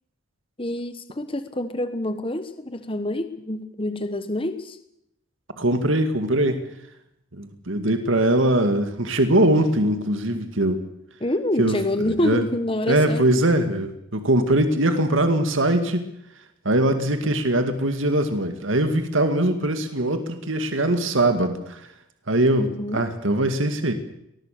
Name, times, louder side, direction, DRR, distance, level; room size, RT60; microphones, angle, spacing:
voice 1, 0.6-4.8 11.2-13.2 22.6-23.0, left 1 dB, 25° left, 10 dB, 1.3 m, -27 dB
voice 2, 5.6-6.6 7.3-10.8 11.6-12.4 12.9-16.1 16.6-21.8 22.3-23.9, right 1 dB, 70° right, 8 dB, 2.2 m, -21 dB
21.5 x 19.5 x 6.8 m, 0.78 s
head